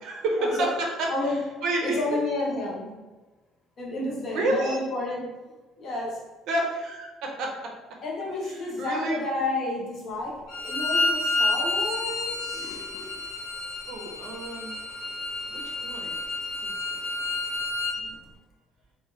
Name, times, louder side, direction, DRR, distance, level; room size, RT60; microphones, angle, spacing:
voice 1, 0.0-0.7 1.0-1.1 1.6-2.0 4.3-4.8 6.5-7.7 8.4-9.2 13.9-14.8 15.5-16.2 16.6-16.7, right 1 dB, 65° right, 0 dB, 0.5 m, -29 dB
voice 2, 1.1-3.0 3.8-5.3 5.8-6.3 8.0-13.2 18.0-18.3, left 2 dB, 40° left, -3 dB, 0.7 m, -31 dB
Bowed string instrument, 10.5-18.0, left 2 dB, 80° left, 0.8 m, -29 dB
2.9 x 2.1 x 3.1 m, 1.2 s
cardioid pair, 175°, 0 cm